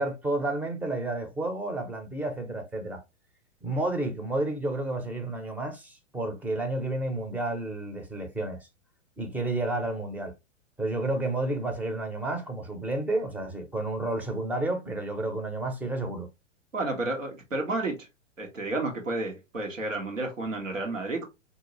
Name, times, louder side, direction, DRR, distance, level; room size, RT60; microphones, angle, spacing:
voice 1, 0.0-3.0 3.6-8.7 9.2-10.3 10.8-16.3, right 2 dB, 5° right, 0.5 m, -31 dB
voice 2, 16.7-18.1 18.4-21.2, right 2 dB, 90° right, 1.3 m, -31 dB
4.0 x 2.7 x 2.8 m
figure-of-eight pair, 110°, 38 cm